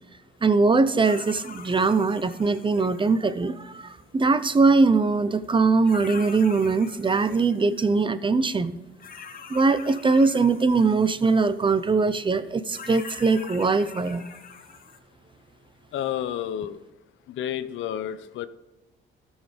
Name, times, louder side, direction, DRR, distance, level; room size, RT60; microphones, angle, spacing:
voice 1, 0.4-8.8 9.5-14.2, right 4 dB, 25° right, 14 dB, 0.6 m, -21 dB
sound 1, 1.0-3.9 5.4-5.5 5.8-7.9 9.0-11.9 12.7-15.0, left 6 dB, 45° left, 1.3 m, -44 dB
voice 2, 15.9-16.8 17.4-18.5, left 10 dB, 80° left, 13 dB, 0.7 m, -30 dB
13.0 x 6.4 x 5.1 m, 1.1 s
cardioid pair, 90°, 20 cm